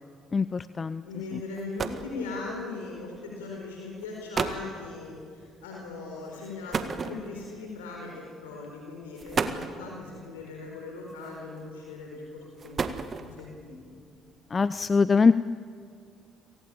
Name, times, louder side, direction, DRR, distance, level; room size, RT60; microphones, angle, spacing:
voice 1, 0.3-1.0 14.5-15.3, left 4 dB, 35° left, 15 dB, 0.6 m, -22 dB
voice 2, 1.0-12.8 13.2-13.9, left 3 dB, 85° left, -1 dB, 4.4 m, -39 dB
sound 1, 1.2-1.3 1.5-2.2 3.2-3.4 4.0-4.1 4.3-4.7 6.7-7.6 8.5-8.7 9.2-9.8 11.1-11.6 12.4-13.5, right 5 dB, 45° right, 1.8 m, -31 dB
30.0 x 18.0 x 8.8 m, 2.2 s
hypercardioid pair, 50°, 0 cm